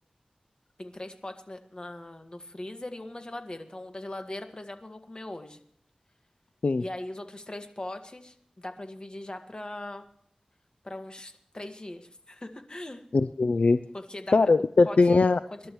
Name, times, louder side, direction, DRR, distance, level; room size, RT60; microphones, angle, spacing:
voice 1, 0.8-5.6 6.8-10.1 10.8-13.0 13.9-15.0 15.5-15.7, left 1 dB, 35° left, 6 dB, 1.8 m, -40 dB
voice 2, 13.1-13.8 14.3-15.4, left 3 dB, 70° left, 13 dB, 0.4 m, -21 dB
25.5 x 11.5 x 3.1 m, 0.66 s
wide cardioid pair, 60°, 2 cm